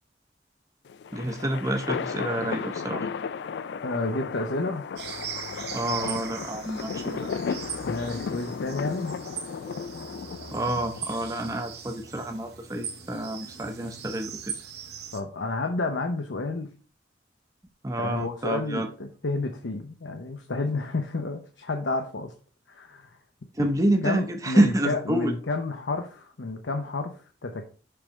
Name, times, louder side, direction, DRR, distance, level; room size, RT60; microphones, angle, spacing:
sound 1, 0.9-11.3, left 6 dB, 70° left, 0.3 m, -34 dB
voice 1, 1.1-3.1 5.7-7.3 10.5-14.3 17.8-18.9 23.6-25.3, right 1 dB, 20° right, 5 dB, 0.7 m, -27 dB
voice 2, 3.8-4.9 7.8-9.2 15.1-16.7 18.0-22.3 22.7-23.2 23.6-23.7 24.0-27.7, left 2 dB, 90° left, 4 dB, 0.8 m, -30 dB
sound 2, 5.0-15.2, right 7 dB, 60° right, 1.0 m, -40 dB
6.8 x 3.5 x 5.1 m, 0.39 s
head